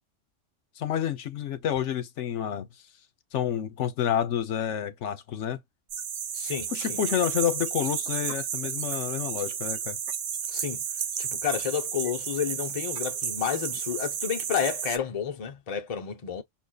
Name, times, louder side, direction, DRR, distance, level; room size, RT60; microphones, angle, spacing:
voice 1, 0.8-2.7 3.3-5.6 6.7-10.0, left 9 dB, 75° left, 1.0 m, -29 dB
sound 1, 5.9-15.0, right 8 dB, 80° right, 1.0 m, -32 dB
voice 2, 6.3-7.0 10.5-10.8 11.2-16.4, left 8 dB, 35° left, 0.7 m, -31 dB
5.7 x 2.5 x 2.2 m
omnidirectional pair, 1.3 m